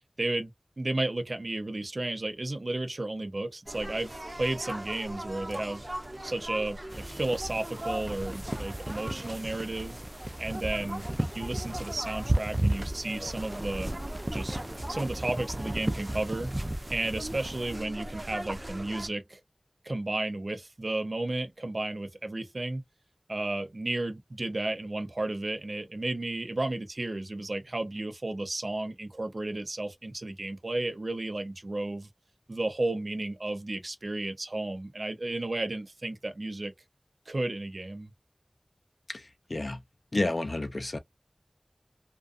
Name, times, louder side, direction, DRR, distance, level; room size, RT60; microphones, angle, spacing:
voice 1, 0.2-0.5 0.8-5.8 6.2-10.0 10.4-13.9 14.3-14.6 14.9-16.5 16.9-19.4 19.8-22.8 23.3-32.1 32.5-36.7 37.3-38.1, right 2 dB, 80° right, 0.6 m, -33 dB
sound 1, 3.7-19.1, right 1 dB, 50° right, 0.8 m, -40 dB
sound 2, 6.9-17.8, right 1 dB, 30° right, 0.4 m, -34 dB
voice 2, 39.1-39.8 40.1-41.0, left 2 dB, 75° left, 0.5 m, -31 dB
2.4 x 2.2 x 2.5 m
wide cardioid pair, 50°, 0 cm